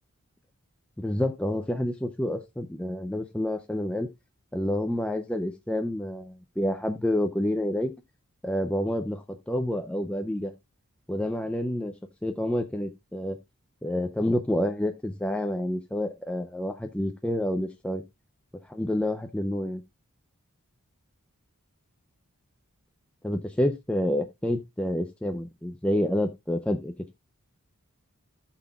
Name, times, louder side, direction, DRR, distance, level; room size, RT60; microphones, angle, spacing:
voice 1, 1.0-4.1 4.5-7.9 8.4-10.5 11.1-11.9 12.2-13.4 13.8-18.0 18.7-19.8 23.2-26.9, left 1 dB, 5° left, 0.5 m, -28 dB
16.0 x 5.8 x 2.3 m
head